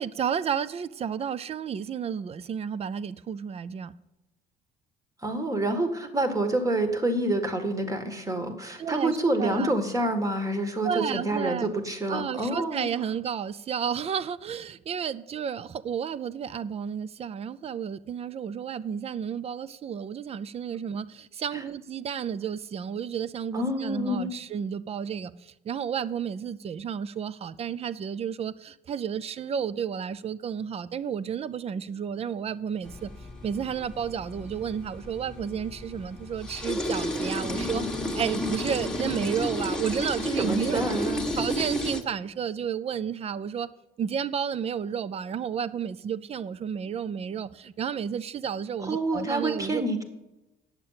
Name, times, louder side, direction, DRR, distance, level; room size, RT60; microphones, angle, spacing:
voice 1, 0.0-3.9 8.8-9.7 10.8-11.7 12.1-33.1 33.4-37.8 38.1-40.9 41.4-43.7 44.0-49.8, right 7 dB, 35° right, 0.5 m, -32 dB
voice 2, 5.2-12.9 21.5-21.6 23.5-24.3 40.4-41.2 48.9-50.0, right 1 dB, 20° right, 1.6 m, -27 dB
sound 1, 32.8-42.0, left 1 dB, 5° left, 1.4 m, -32 dB
9.6 x 6.9 x 5.7 m
cardioid pair, 110°, 17 cm